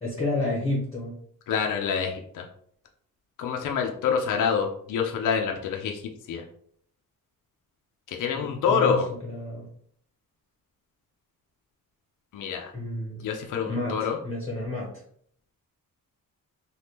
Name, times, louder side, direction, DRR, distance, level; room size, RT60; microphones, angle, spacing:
voice 1, 0.0-1.1 8.3-9.7 12.7-13.2 13.7-14.9, left 2 dB, 20° left, -3 dB, 0.8 m, -30 dB
voice 2, 1.5-2.4 3.4-6.0 6.3-6.4 8.1-9.1 12.3-12.7 13.2-14.2, left 6 dB, 65° left, 2 dB, 0.5 m, -26 dB
3.4 x 2.3 x 2.8 m, 0.64 s
wide cardioid pair, 135°, 34 cm